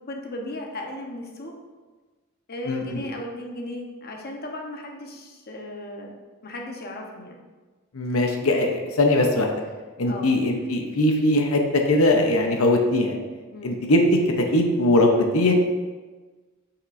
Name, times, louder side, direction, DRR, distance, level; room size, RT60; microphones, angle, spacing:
voice 1, 0.1-1.5 2.5-6.1 6.4-7.4 10.0-10.3 13.5-13.7, left 1 dB, 45° left, 1 dB, 1.0 m, -36 dB
voice 2, 2.7-3.0 7.9-9.5 10.0-13.2 13.6-14.0 14.4-15.5, left 1 dB, 70° left, 3 dB, 0.8 m, -21 dB
7.9 x 5.9 x 2.6 m, 1.3 s
head